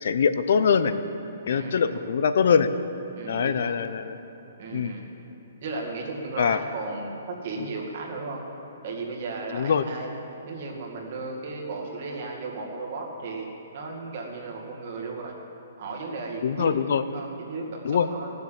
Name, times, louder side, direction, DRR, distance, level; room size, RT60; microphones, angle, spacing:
voice 1, 0.0-0.9 1.5-2.7 3.3-4.2 4.7-4.9 6.4-6.6 9.5-9.8 16.4-17.0 17.8-18.1, left 6 dB, 55° left, 12 dB, 0.7 m, -23 dB
voice 2, 1.5-2.0 3.1-3.8 4.6-5.0 5.6-8.4 8.8-10.1 10.4-15.3 15.8-16.8 17.1-18.3, right 3 dB, 40° right, -1 dB, 2.1 m, -35 dB
17.0 x 7.7 x 7.5 m, 3.0 s
hypercardioid pair, 175°, 0 cm